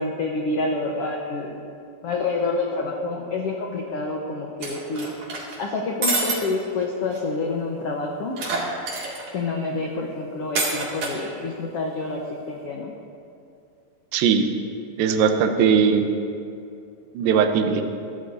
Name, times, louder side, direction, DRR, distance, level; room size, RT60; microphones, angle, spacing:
voice 1, 0.0-1.6 2.0-5.1 5.6-8.3 9.3-12.2 12.5-12.9, left 3 dB, 75° left, 0 dB, 1.4 m, -27 dB
sound 1, 4.6-5.6 6.0-6.4 6.8-6.9 7.1-7.2 8.4-9.3 10.6-11.2, right 3 dB, 55° right, 3.6 m, -26 dB
voice 2, 14.1-14.5 15.0-16.1 17.1-17.8, right 6 dB, 80° right, 6 dB, 2.6 m, -19 dB
23.5 x 14.5 x 2.7 m, 2.6 s
omnidirectional pair, 4.2 m